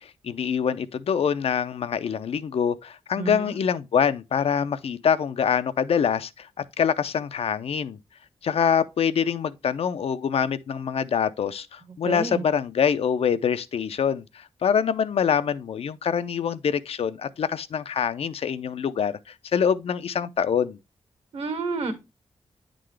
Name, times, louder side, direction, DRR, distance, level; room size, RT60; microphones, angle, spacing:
voice 1, 0.0-6.5 6.8-8.0 8.4-20.8, left 7 dB, 65° left, 0.4 m, -25 dB
voice 2, 3.2-3.5 12.0-12.4 21.3-21.9, right 4 dB, 65° right, 1.6 m, -29 dB
9.3 x 3.8 x 3.2 m
wide cardioid pair, 155°, 11 cm